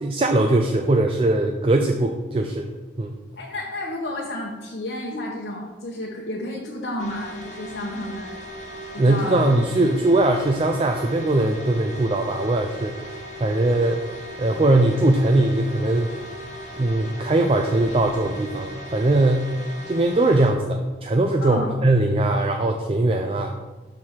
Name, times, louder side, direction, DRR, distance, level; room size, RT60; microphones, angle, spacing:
voice 1, 0.0-2.7 3.0-3.1 9.0-14.0 14.4-16.3 16.8-19.4 19.9-23.5, right 2 dB, 30° right, 3 dB, 0.4 m, -20 dB
voice 2, 3.4-8.4 8.9-9.5 21.4-21.8, left 1 dB, 70° left, -3 dB, 1.0 m, -31 dB
sound 1, 7.0-20.5, equal, 40° left, 1.0 m, -38 dB
6.2 x 4.7 x 5.6 m, 1.2 s
head